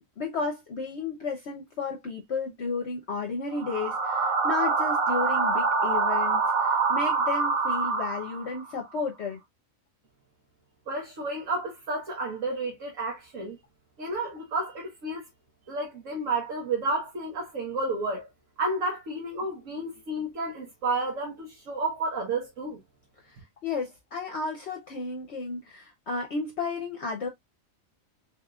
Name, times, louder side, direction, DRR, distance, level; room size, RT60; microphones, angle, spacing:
voice 1, 0.2-9.4 23.3-23.4 23.6-27.3, left 4 dB, 55° left, 1.0 m, -33 dB
sound 1, 3.5-8.6, right 4 dB, 85° right, 1.3 m, -25 dB
voice 2, 10.9-13.6 14.0-15.2 15.7-18.3 18.6-22.8, right 2 dB, 70° right, 1.4 m, -31 dB
3.7 x 3.5 x 2.3 m
omnidirectional pair, 1.4 m